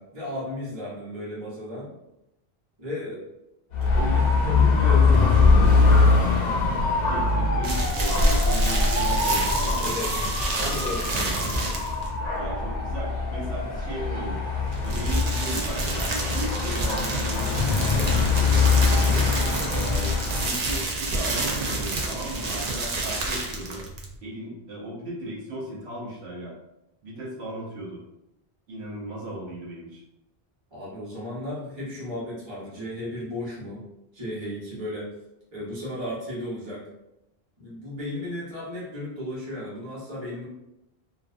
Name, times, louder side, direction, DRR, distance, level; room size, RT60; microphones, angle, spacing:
voice 1, 0.0-1.9 2.8-3.2 3.9-6.2 9.8-10.1 10.6-11.2 30.7-33.8 34.1-35.1 35.5-36.9 37.6-40.5, left 1 dB, 25° right, -8 dB, 1.0 m, -34 dB
Dog / Motorcycle, 3.7-20.5, left 4 dB, 55° left, 0.5 m, -22 dB
voice 2, 5.8-10.0 10.9-11.7 12.3-14.4 14.8-19.3 19.7-23.9 24.2-26.5 27.0-28.0 28.7-30.0, right 1 dB, 80° right, -5 dB, 1.0 m, -36 dB
sound 1, 7.6-12.1 14.6-24.1, right 2 dB, 55° right, 0.5 m, -29 dB
2.5 x 2.3 x 2.4 m, 0.89 s
omnidirectional pair, 1.1 m